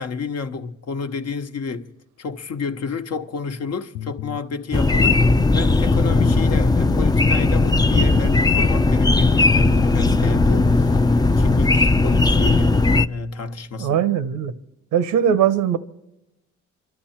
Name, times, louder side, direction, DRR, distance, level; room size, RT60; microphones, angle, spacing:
voice 1, 0.0-1.9 2.2-5.2 5.5-14.0, left 4 dB, 55° left, 1.1 m, -29 dB
sound 1, 3.9-4.4 5.8-6.5 7.9-8.5 9.8-10.5, left 17 dB, 75° left, 0.5 m, -32 dB
sound 2, 4.7-13.1, left 3 dB, 15° left, 0.5 m, -17 dB
voice 2, 13.8-14.5 14.9-15.8, right 9 dB, 85° right, 1.0 m, -20 dB
26.0 x 12.0 x 4.4 m
cardioid pair, 90°, 30 cm